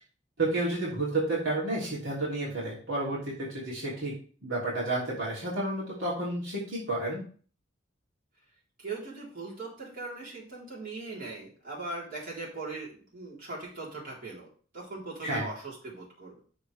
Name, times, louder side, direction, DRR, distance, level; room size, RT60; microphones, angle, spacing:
voice 1, 0.4-4.1 4.4-7.2 15.2-15.5, right 2 dB, 70° right, -6 dB, 3.2 m, -31 dB
voice 2, 8.8-14.5 14.7-16.4, right 3 dB, 45° right, -5 dB, 3.9 m, -40 dB
13.0 x 4.5 x 3.4 m, 0.42 s
head